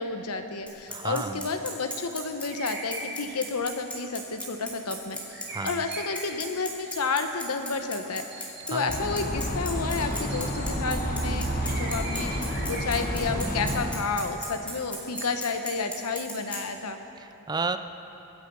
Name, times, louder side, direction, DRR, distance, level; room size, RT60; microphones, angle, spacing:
voice 1, 0.0-17.0, left 4 dB, 85° left, 7 dB, 1.0 m, -31 dB
Bicycle, 0.7-16.6, left 1 dB, 5° left, 2.5 m, -36 dB
voice 2, 0.9-1.4 5.5-5.8 8.7-8.9 17.2-17.8, right 4 dB, 20° right, 10 dB, 0.4 m, -32 dB
sound 1, 2.5-3.4 3.9-4.1 5.3-6.4 6.7-7.1 8.3-9.1 10.3-11.1 11.6-13.3 13.6-13.7 15.1-15.4, right 2 dB, 50° right, 2.2 m, -40 dB
sound 2, 8.9-13.9, equal, 45° left, 1.4 m, -30 dB
24.0 x 8.2 x 5.5 m, 3.0 s
head